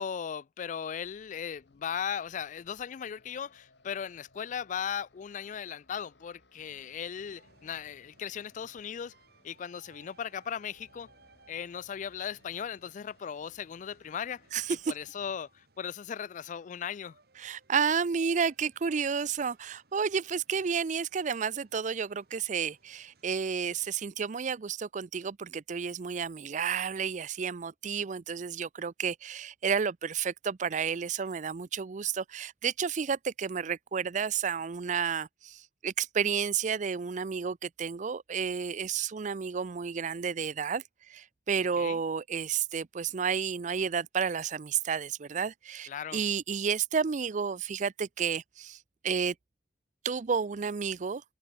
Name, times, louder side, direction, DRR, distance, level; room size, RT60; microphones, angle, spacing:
voice 1, 0.0-9.1 9.4-11.1 11.5-14.4 14.9-17.2 41.8-42.0 45.9-46.2, left 8 dB, 45° left, 0.3 m, -37 dB
sound 1, 1.0-15.1, left 2 dB, 80° left, 5.7 m, -65 dB
sound 2, 6.6-23.9, right 3 dB, 60° right, 3.3 m, -65 dB
voice 2, 17.4-40.8 41.1-48.8 49.0-49.3 50.0-51.2, right 6 dB, 45° right, 0.5 m, -31 dB
open air
head